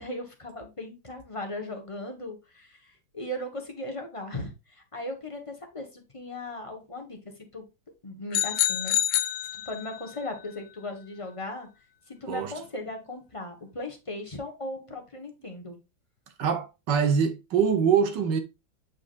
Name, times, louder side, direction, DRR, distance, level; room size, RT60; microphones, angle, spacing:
voice 1, 0.0-7.6 8.0-11.7 12.1-15.8, left 1 dB, 20° left, 1.2 m, -38 dB
sound 1, 8.3-10.1, left 13 dB, 75° left, 1.3 m, -27 dB
voice 2, 16.4-18.4, right 7 dB, 65° right, 1.6 m, -24 dB
8.3 x 4.9 x 2.5 m
omnidirectional pair, 2.1 m